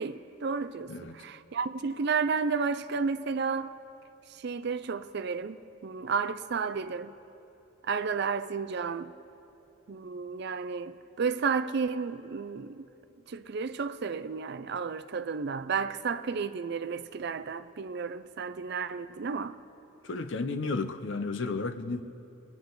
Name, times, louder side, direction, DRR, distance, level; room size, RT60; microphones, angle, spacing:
voice 1, 0.0-3.7 4.3-7.1 7.8-9.1 9.9-12.9 13.3-19.6, right 5 dB, 50° right, 0.4 m, -32 dB
voice 2, 20.0-22.0, left 3 dB, 55° left, 0.6 m, -33 dB
27.5 x 9.5 x 3.9 m
head